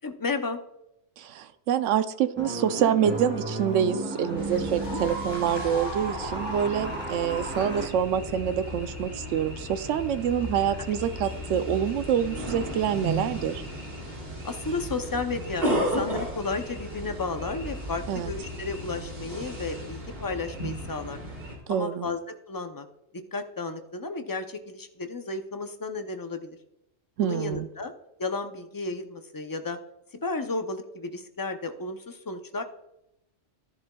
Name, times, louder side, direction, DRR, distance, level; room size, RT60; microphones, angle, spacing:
voice 1, 0.0-0.6 4.5-5.0 14.4-21.2 21.7-22.9 23.3-26.6 27.2-27.9 28.2-29.8 30.2-32.6, left 3 dB, 30° left, 7 dB, 0.3 m, -33 dB
voice 2, 1.2-13.6 18.1-18.3 21.7-22.1 27.2-27.7, right 9 dB, 85° right, 11 dB, 0.9 m, -26 dB
sound 1, 2.4-7.9, right 2 dB, 10° right, 2.5 m, -33 dB
sound 2, 4.4-21.6, equal, 55° right, 3.0 m, -35 dB
13.0 x 10.5 x 2.3 m, 0.84 s
omnidirectional pair, 1.2 m